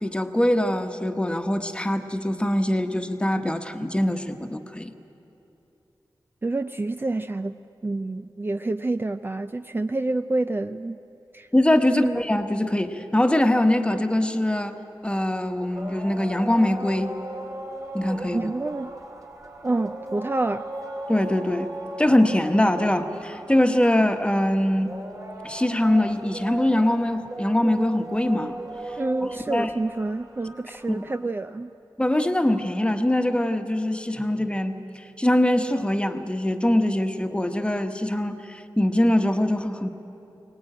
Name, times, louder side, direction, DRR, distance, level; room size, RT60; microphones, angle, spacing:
voice 1, 0.0-4.9 11.5-14.8 15.0-17.1 17.9-18.5 21.1-21.7 22.0-25.0 25.4-28.6 29.5-29.7 30.9-31.0 32.0-39.9, left 1 dB, 15° left, 6 dB, 1.2 m, -23 dB
voice 2, 6.4-11.0 11.3-11.5 11.9-12.2 18.3-18.9 19.6-20.7 29.0-31.7, right 2 dB, 25° right, 9 dB, 0.4 m, -28 dB
sound 1, 15.0-31.4, right 1 dB, 45° right, 2.7 m, -38 dB
23.5 x 19.0 x 8.9 m, 2.9 s
wide cardioid pair, 80°, 8 cm